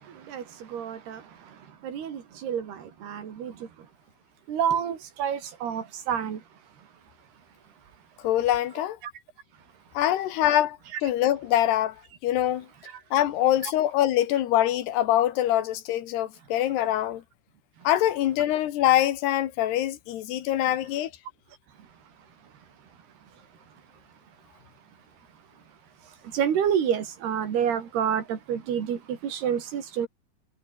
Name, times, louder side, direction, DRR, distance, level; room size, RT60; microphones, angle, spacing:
voice 1, 0.7-1.2 1.8-3.5 4.5-6.4 13.6-13.7 26.3-30.1, right 8 dB, 75° right, 5.0 m, -28 dB
voice 2, 8.2-9.0 10.0-12.0 12.2-12.7 13.1-17.2 17.9-21.1, left 12 dB, 80° left, 3.6 m, -24 dB
omnidirectional pair, 4.7 m